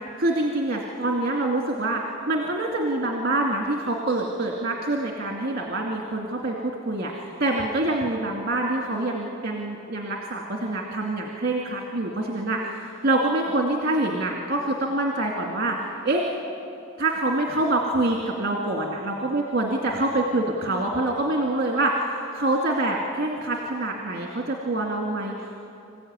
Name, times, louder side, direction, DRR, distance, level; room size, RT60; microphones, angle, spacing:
voice 1, 0.0-2.0 2.3-15.8 16.0-16.2 17.0-25.6, right 2 dB, 50° right, 0 dB, 2.3 m, -26 dB
26.5 x 15.5 x 9.6 m, 2.7 s
head